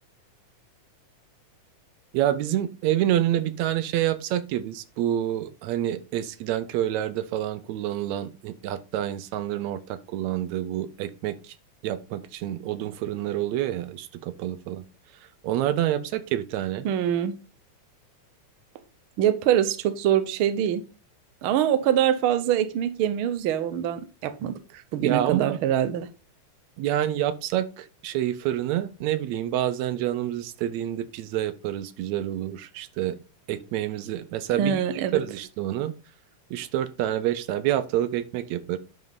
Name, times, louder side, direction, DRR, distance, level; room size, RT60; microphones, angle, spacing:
voice 1, 2.1-11.5 11.8-14.8 15.4-16.9 25.0-25.6 26.8-33.2 33.5-35.9 36.5-38.8, right 12 dB, 75° right, 13 dB, 1.8 m, -28 dB
voice 2, 16.8-17.3 19.2-20.8 21.4-24.5 24.9-26.1 34.6-35.2, right 10 dB, 90° right, 11 dB, 1.1 m, -24 dB
10.5 x 5.4 x 4.0 m, 0.33 s
omnidirectional pair, 3.5 m